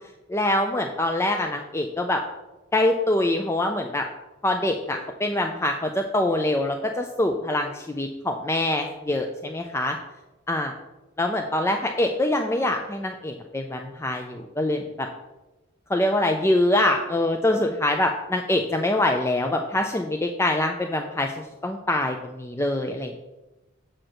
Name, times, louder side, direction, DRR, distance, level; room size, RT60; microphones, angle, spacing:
voice 1, 0.3-2.2 2.7-4.1 4.4-10.0 10.5-10.7 11.2-15.1 15.9-21.3 21.6-23.2, left 1 dB, 15° left, 4 dB, 0.4 m, -24 dB
7.7 x 4.4 x 6.3 m, 1.1 s
head